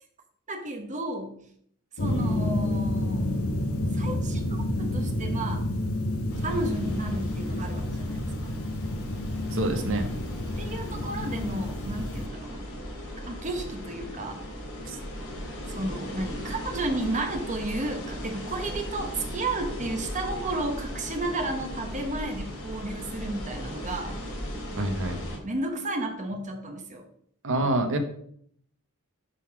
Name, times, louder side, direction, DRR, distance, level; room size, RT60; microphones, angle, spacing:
voice 1, 0.5-1.3 2.0-3.3 3.9-5.7 6.4-8.5 10.6-12.7 13.3-14.4 15.7-24.2 25.4-27.0, right 2 dB, 35° right, 4 dB, 1.1 m, -33 dB
sound 1, 2.0-12.3, left 1 dB, 70° left, 0.9 m, -29 dB
sound 2, 6.3-25.4, equal, 90° left, 3.1 m, -37 dB
voice 2, 9.5-10.1 14.8-15.0 24.8-25.2 27.4-28.0, right 2 dB, 60° right, 6 dB, 1.2 m, -26 dB
8.1 x 3.9 x 6.0 m, 0.65 s
head